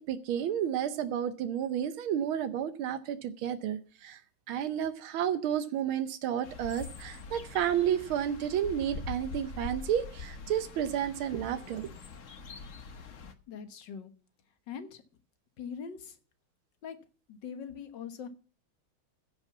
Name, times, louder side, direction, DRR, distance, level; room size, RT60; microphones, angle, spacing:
voice 1, 0.0-4.2 4.5-11.9, right 9 dB, 85° right, 11 dB, 1.6 m, -31 dB
sound 1, 6.4-13.3, left 4 dB, 45° left, 1.3 m, -44 dB
voice 2, 13.5-14.1 14.7-15.0 15.6-16.2 16.8-17.0 17.3-18.3, left 7 dB, 60° left, 9 dB, 1.9 m, -42 dB
15.5 x 5.3 x 7.1 m, 0.39 s
omnidirectional pair, 2.2 m